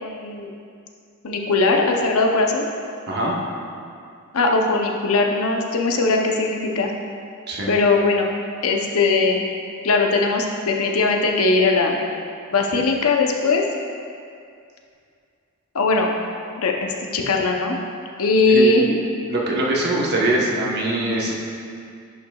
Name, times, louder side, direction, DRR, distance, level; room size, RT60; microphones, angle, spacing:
voice 1, 0.0-0.5 1.2-2.6 4.3-6.9 7.7-8.3 8.6-9.4 9.8-11.9 12.5-13.6 15.7-16.1 16.6-17.8 18.2-19.0, left 3 dB, 70° left, 1 dB, 0.7 m, -19 dB
voice 2, 19.3-21.3, right 1 dB, 50° right, -3 dB, 1.0 m, -22 dB
10.5 x 5.7 x 2.3 m, 2.4 s
head